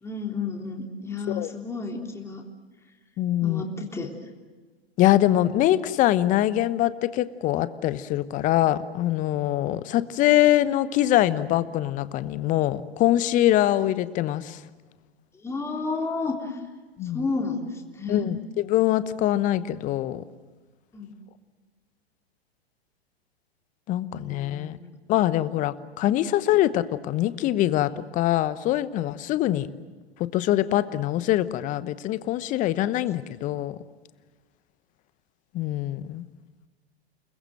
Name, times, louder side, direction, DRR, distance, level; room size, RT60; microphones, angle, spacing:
voice 1, 0.0-2.4 3.4-4.1 15.3-16.6 17.1-18.3 20.9-21.1 24.1-24.9 32.8-32.9, left 4 dB, 10° left, 1 dB, 3.6 m, -31 dB
voice 2, 3.2-3.6 5.0-14.6 17.0-17.2 18.1-20.2 23.9-24.8 25.1-29.7 30.3-33.7 35.5-36.2, left 13 dB, 25° left, 15 dB, 1.0 m, -23 dB
29.5 x 21.0 x 7.8 m, 1.4 s
figure-of-eight pair, 110°, 32 cm